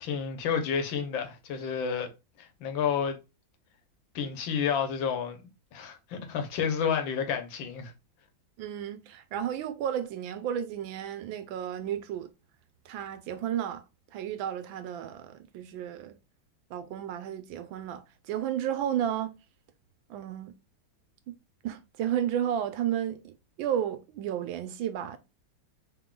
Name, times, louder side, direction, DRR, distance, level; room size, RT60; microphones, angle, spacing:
voice 1, 0.0-2.1 2.4-3.2 4.1-5.4 5.7-7.9, left 7 dB, 80° left, 1.6 m, -30 dB
voice 2, 8.6-12.3 12.8-13.8 14.1-16.2 16.7-19.3 20.1-20.5 21.6-25.2, right 10 dB, 90° right, 1.4 m, -32 dB
3.8 x 3.7 x 2.3 m
omnidirectional pair, 2.1 m